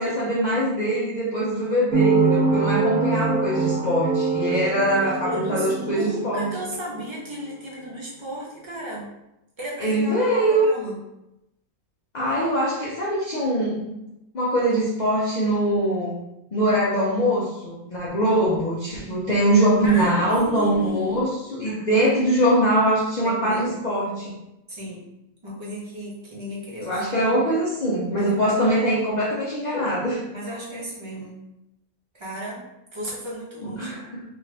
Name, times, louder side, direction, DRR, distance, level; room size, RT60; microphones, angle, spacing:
voice 1, 0.0-6.5 9.8-10.7 12.1-14.0 14.3-16.2 16.5-24.3 26.8-30.2 33.6-34.2, right 1 dB, 50° left, -6 dB, 0.5 m, -22 dB
sound 1, 1.9-6.8, right 4 dB, 70° right, 1.1 m, -24 dB
voice 2, 5.0-9.1 9.6-11.0 19.8-21.2 23.2-23.6 24.7-25.0 25.4-27.5 28.1-28.6 30.3-31.4 32.1-32.6 32.9-34.0, equal, 30° right, -5 dB, 0.6 m, -34 dB
2.6 x 2.5 x 3.2 m, 0.88 s
omnidirectional pair, 1.5 m